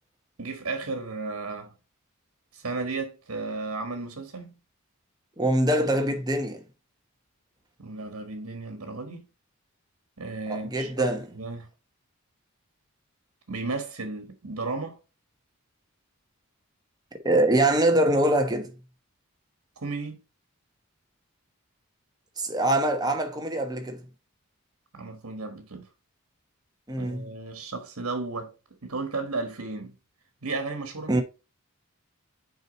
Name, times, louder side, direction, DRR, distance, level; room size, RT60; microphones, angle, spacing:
voice 1, 0.4-1.7 2.5-4.6 7.8-9.3 10.2-11.7 13.5-15.0 19.8-20.2 24.9-25.9 27.0-28.5 28.8-29.9 30.4-31.1, right 3 dB, 75° right, 1.4 m, -34 dB
voice 2, 5.4-6.6 10.5-11.3 17.2-18.7 22.4-24.0 26.9-27.3 31.1-31.2, right 1 dB, 20° right, 1.1 m, -24 dB
6.4 x 4.6 x 4.0 m
head